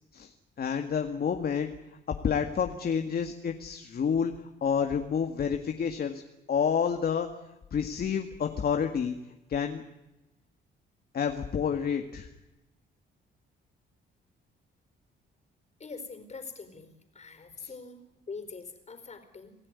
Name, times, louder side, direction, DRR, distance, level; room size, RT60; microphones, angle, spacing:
voice 1, 0.6-1.7 2.2-4.3 4.6-6.2 6.5-7.3 7.7-9.1 9.5-9.8 11.1-12.3 17.6-17.7, left 7 dB, 50° left, 6 dB, 1.9 m, -29 dB
voice 2, 15.8-19.6, left 4 dB, 35° left, 9 dB, 4.6 m, -44 dB
26.5 x 15.0 x 9.7 m, 0.99 s
cardioid pair, 90°, 20 cm